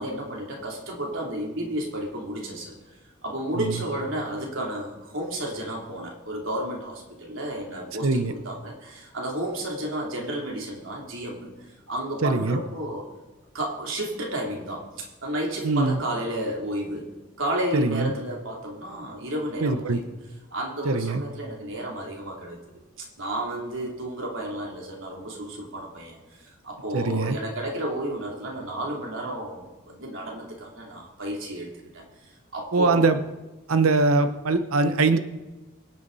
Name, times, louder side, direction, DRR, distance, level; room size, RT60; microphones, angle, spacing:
voice 1, 0.0-3.0 3.2-13.1 13.5-20.1 20.5-22.6 23.0-33.1, right 1 dB, 65° right, -1 dB, 3.2 m, -32 dB
voice 2, 8.0-8.3 12.2-12.6 15.6-16.0 17.7-18.1 19.6-20.0 20.8-21.2 26.9-27.4 32.7-33.2 33.7-35.2, right 3 dB, 90° right, 10 dB, 0.8 m, -22 dB
24.5 x 8.5 x 4.1 m, 1.1 s
head